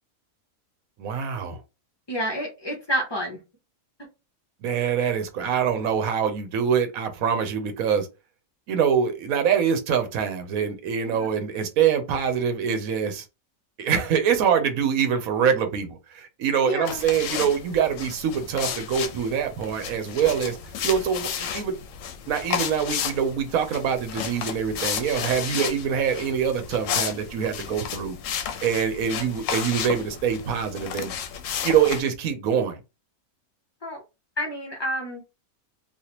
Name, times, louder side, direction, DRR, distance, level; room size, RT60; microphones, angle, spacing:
voice 1, 1.0-1.6 4.6-8.1 8.7-13.2 13.8-20.6 20.8-21.7 22.3-28.2 28.6-31.1 31.6-32.8, right 7 dB, 80° right, 1.1 m, -24 dB
voice 2, 2.1-3.4 11.1-11.3 16.6-17.0 25.5-25.7 33.8-34.0 34.4-35.2, equal, 30° left, 0.5 m, -29 dB
sound 1, 16.8-32.0, left 8 dB, 70° left, 0.9 m, -32 dB
3.3 x 2.5 x 2.8 m
omnidirectional pair, 1.5 m